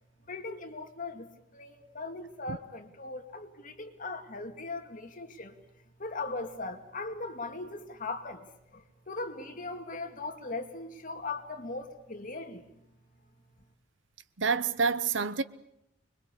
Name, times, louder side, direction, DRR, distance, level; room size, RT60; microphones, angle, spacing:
voice 1, 0.3-1.3 1.5-5.5 6.0-8.5 8.7-12.8, left 3 dB, 45° left, 2.4 m, -39 dB
voice 2, 14.4-15.4, right 5 dB, 80° right, 1.0 m, -28 dB
25.5 x 22.0 x 8.4 m
head